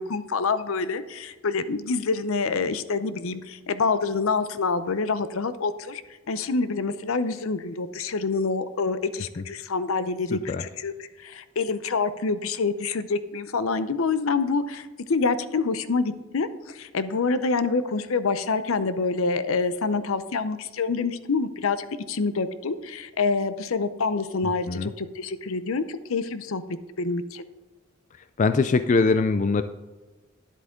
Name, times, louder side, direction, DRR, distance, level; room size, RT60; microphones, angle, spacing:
voice 1, 0.0-6.0 6.3-10.9 11.2-26.6 27.0-27.5, left 4 dB, 75° left, 13 dB, 0.6 m, -27 dB
voice 2, 10.3-10.6 24.7-24.9 28.4-29.6, left 4 dB, 35° left, 11 dB, 0.3 m, -22 dB
10.0 x 8.2 x 3.7 m, 1.2 s
head